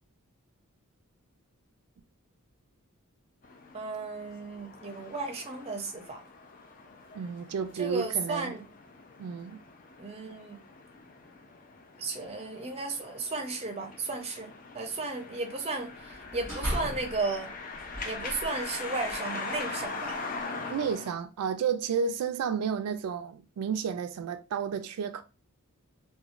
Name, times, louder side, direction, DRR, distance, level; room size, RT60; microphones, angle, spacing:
sound 1, 3.4-21.1, left 4 dB, 40° left, 0.4 m, -42 dB
voice 1, 3.7-6.2 7.8-8.6 10.0-10.6 12.0-17.5 18.0-20.2, right 3 dB, 25° right, 0.5 m, -34 dB
voice 2, 7.1-8.5 9.2-9.6 20.7-25.2, right 6 dB, 85° right, 0.3 m, -31 dB
sound 2, 16.1-17.2 17.7-20.5, equal, 10° left, 1.2 m, -39 dB
2.9 x 2.3 x 2.5 m
head